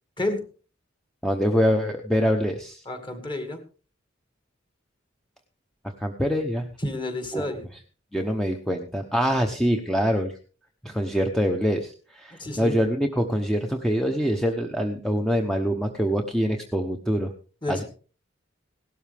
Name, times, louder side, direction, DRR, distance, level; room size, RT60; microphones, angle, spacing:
voice 1, 1.2-2.8 6.0-6.6 7.3-7.4 8.1-10.3 10.8-17.3 17.7-17.8, equal, ahead, 3 dB, 0.9 m, -24 dB
voice 2, 2.9-3.6 6.8-7.7 12.4-12.8 17.6-17.8, left 1 dB, 25° left, 7 dB, 2.1 m, -30 dB
17.5 x 12.5 x 3.5 m, 0.37 s
head